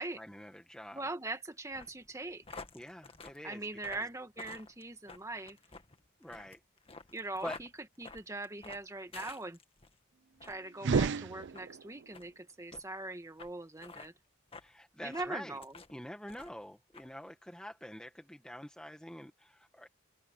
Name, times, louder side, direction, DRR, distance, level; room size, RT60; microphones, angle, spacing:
voice 1, 0.0-1.1 2.7-4.1 6.2-6.6 7.4-7.6 14.6-15.6 15.9-19.9, equal, 5° left, 1.3 m, -46 dB
voice 2, 0.9-2.6 3.4-5.6 7.1-7.7 8.0-9.6 10.4-14.1 15.0-15.7, right 2 dB, 15° right, 1.7 m, -41 dB
sound 1, 1.7-9.9 10.3-10.6 10.9-11.1 11.5-11.7 12.1-12.3 12.7-12.8 13.4-13.5 13.8-14.1 14.5-14.7 15.1-15.9 16.3-16.6 16.9-17.1, left 4 dB, 25° left, 1.7 m, -50 dB
sound 2, 10.7-12.1, right 5 dB, 60° right, 0.4 m, -31 dB
head